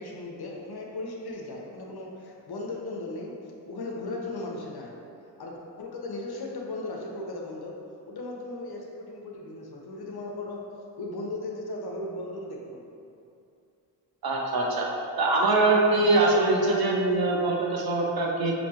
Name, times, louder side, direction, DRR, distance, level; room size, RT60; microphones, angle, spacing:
voice 1, 0.0-3.4 3.7-4.9 5.4-7.8 8.1-10.7 11.0-12.9, left 2 dB, 55° left, -1 dB, 0.8 m, -37 dB
voice 2, 14.2-14.9 15.2-18.5, right 2 dB, 50° right, -2 dB, 0.8 m, -23 dB
4.4 x 2.8 x 2.8 m, 2.6 s
supercardioid pair, 40°, 45 cm